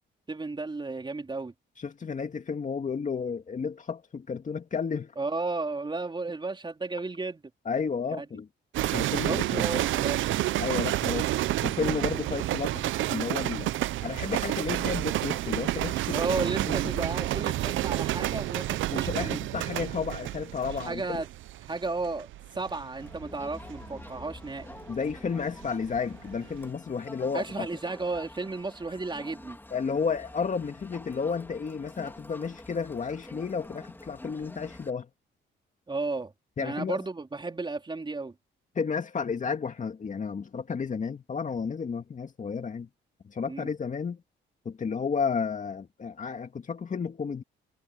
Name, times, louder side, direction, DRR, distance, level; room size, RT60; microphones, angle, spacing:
voice 1, 0.3-1.5 5.2-7.4 8.2-8.3 9.2-10.2 16.1-19.4 20.8-21.3 21.7-22.3 22.5-24.7 27.3-29.6 35.9-36.3 36.6-38.3 43.5-43.7, right 3 dB, 25° right, 4.1 m, -33 dB
voice 2, 1.8-5.1 7.7-8.5 8.9-9.9 10.6-11.3 11.6-13.7 14.0-16.2 16.7-17.0 18.9-21.2 24.9-27.7 29.7-35.1 36.6-37.0 38.7-42.9 43.2-44.2 44.6-47.4, left 5 dB, 40° left, 2.4 m, -32 dB
sound 1, 8.7-26.0 26.3-26.7, right 15 dB, 75° right, 0.6 m, -30 dB
Crowd, 23.0-34.9, left 1 dB, 10° left, 3.0 m, -47 dB
cardioid pair, 90°, 20 cm